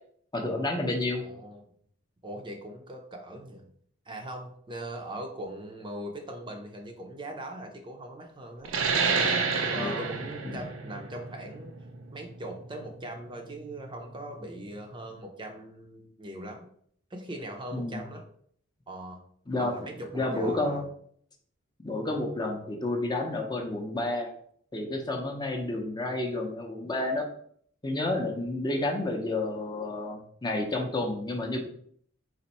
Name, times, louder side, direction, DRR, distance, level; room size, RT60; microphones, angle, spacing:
voice 1, 0.3-1.2 9.7-10.1 10.4-10.6 17.7-18.0 19.5-19.7 20.1-20.8 21.8-24.3 24.7-27.3 27.8-31.6, left 2 dB, 20° left, 2 dB, 0.6 m, -30 dB
voice 2, 1.1-1.6 2.2-3.7 4.1-8.7 9.7-11.7 12.1-16.7 17.1-18.2 18.9-19.2 19.6-20.8, right 1 dB, 25° right, 2 dB, 0.6 m, -40 dB
sound 1, 8.6-13.8, right 5 dB, 85° right, 0.6 m, -29 dB
4.2 x 2.6 x 4.1 m, 0.62 s
head